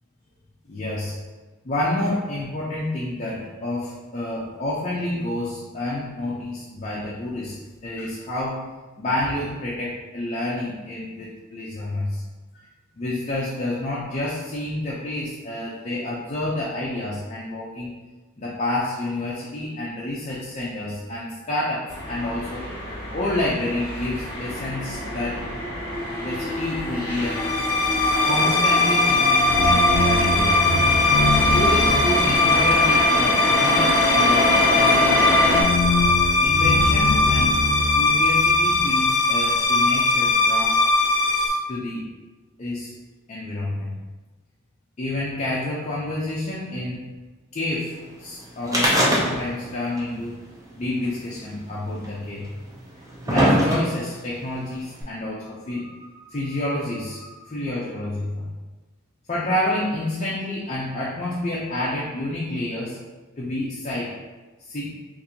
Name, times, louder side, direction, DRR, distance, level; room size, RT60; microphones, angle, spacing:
voice 1, 0.7-1.1 1.6-7.6 7.8-8.6 9.0-12.2 12.5-12.7 12.9-17.9 18.4-22.6 23.1-25.4 26.2-27.5 28.2-30.7 31.5-35.1 36.4-37.6 37.9-40.8 41.4-42.0 42.6-42.9 43.3-44.0 45.0-47.1 47.5-50.4 50.8-52.5 53.2-58.5 59.3-63.0 63.4-64.1 64.6-64.9, left 1 dB, 35° left, -6 dB, 0.5 m, -29 dB
sound 1, 21.9-35.6, left 1 dB, 15° left, 1.2 m, -25 dB
sound 2, 27.3-41.5, left 3 dB, 75° left, 0.6 m, -19 dB
sound 3, 48.7-49.7 50.0-50.1 51.0-51.1 52.0-52.1 52.8-54.2 55.0-55.1, equal, 15° right, 0.5 m, -20 dB
4.1 x 2.6 x 2.7 m, 1.2 s
head